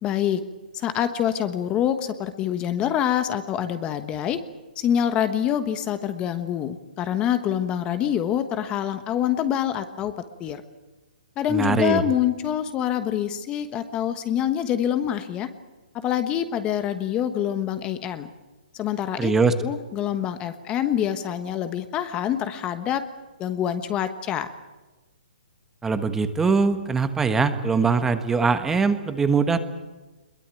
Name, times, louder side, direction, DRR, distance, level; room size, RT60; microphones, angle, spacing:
voice 1, 0.0-0.4 0.7-4.4 4.7-10.1 10.4-10.6 11.4-15.5 15.9-18.3 18.7-19.3 19.6-23.0 23.4-24.5, left 10 dB, 20° left, 10 dB, 1.2 m, -26 dB
voice 2, 11.5-12.0 19.2-19.5 25.8-29.6, right 4 dB, 10° right, 9 dB, 1.4 m, -22 dB
22.0 x 21.0 x 9.1 m, 1.2 s
hypercardioid pair, 150°, 5 cm